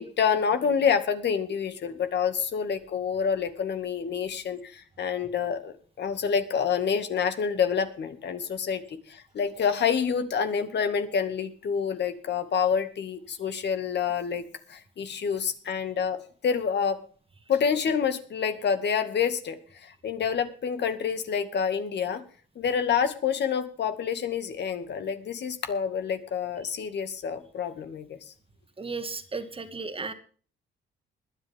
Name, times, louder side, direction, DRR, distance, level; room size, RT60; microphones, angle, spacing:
voice 1, 0.0-14.4 14.7-16.2 16.4-17.0 17.5-22.2 22.6-28.2, left 7 dB, 60° left, 8 dB, 2.2 m, -28 dB
voice 2, 28.8-30.1, right 4 dB, 25° right, 9 dB, 1.9 m, -34 dB
20.5 x 10.5 x 3.7 m, 0.43 s
cardioid pair, 90°, 20 cm